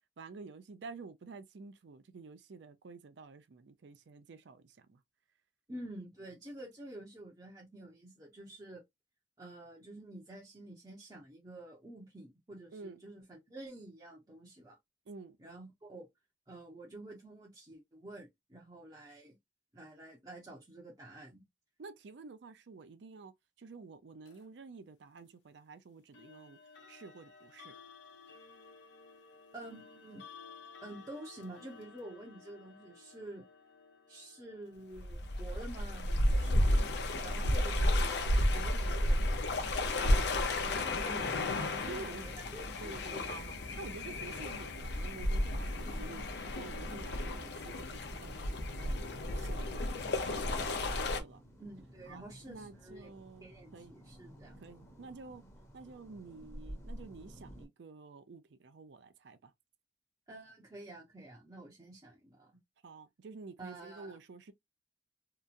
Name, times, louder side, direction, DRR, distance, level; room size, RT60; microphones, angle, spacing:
voice 1, 0.2-5.0 12.7-13.0 15.1-15.4 21.8-23.3 23.6-26.6 26.9-27.7 41.8-42.3 42.8-49.9 50.3-51.4 52.1-53.9 54.6-55.4 55.7-59.5 62.8-64.5, right 4 dB, 70° right, 0.5 m, -50 dB
voice 2, 5.7-8.8 9.4-14.8 15.4-16.1 16.5-19.4 19.7-21.4 29.5-30.2 30.8-33.5 34.1-38.0 38.5-39.2 39.4-40.3 40.6-41.4 41.8-43.4 45.8-45.9 51.6-53.1 53.4-54.7 60.3-62.5 63.6-64.2, right 1 dB, 20° right, 0.7 m, -49 dB
sound 1, 24.2-24.5 26.1-39.0, left 5 dB, 90° left, 0.9 m, -57 dB
sound 2, 34.9-51.2, left 1 dB, 65° left, 0.6 m, -32 dB
sound 3, 47.3-57.7, equal, 15° left, 0.9 m, -53 dB
2.8 x 2.3 x 2.4 m
head